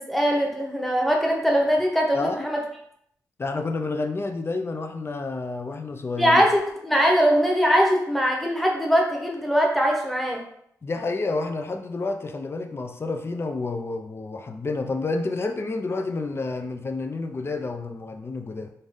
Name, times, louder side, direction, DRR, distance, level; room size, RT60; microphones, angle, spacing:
voice 1, 0.0-2.6 6.2-10.4, equal, ahead, 0 dB, 1.0 m, -21 dB
voice 2, 2.1-2.5 3.4-6.5 10.8-18.7, left 3 dB, 40° left, 6 dB, 0.5 m, -29 dB
3.8 x 2.6 x 3.5 m, 0.70 s
cardioid pair, 75°, 7 cm